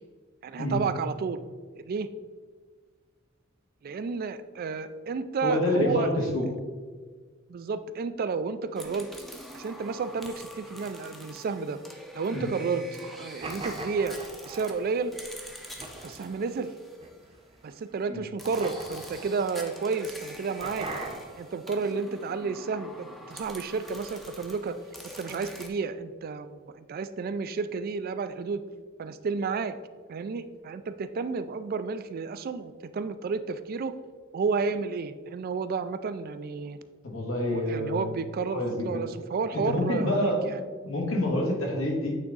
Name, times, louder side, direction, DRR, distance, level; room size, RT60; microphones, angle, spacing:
voice 1, 0.4-1.4 1.7-2.1 3.8-6.3 7.5-9.1 9.5-11.8 12.1-14.2 14.5-15.1 16.0-16.7 17.6-20.9 21.4-24.8 25.2-28.6 29.0-29.7 30.1-33.9 34.3-36.8 37.5-40.3, right 4 dB, 45° right, 12 dB, 0.3 m, -31 dB
voice 2, 5.4-6.5 12.3-12.5 18.1-18.2 37.0-38.1 38.5-39.0 39.5-42.1, left 1 dB, 80° left, 0 dB, 1.5 m, -28 dB
sound 1, 8.7-17.6 18.4-25.7, equal, ahead, 0.6 m, -46 dB
sound 2, 13.4-14.9 15.8-16.4 17.0-17.7 18.6-19.7 20.6-21.5, right 2 dB, 30° right, 0.8 m, -39 dB
8.7 x 3.5 x 3.9 m, 1.5 s
head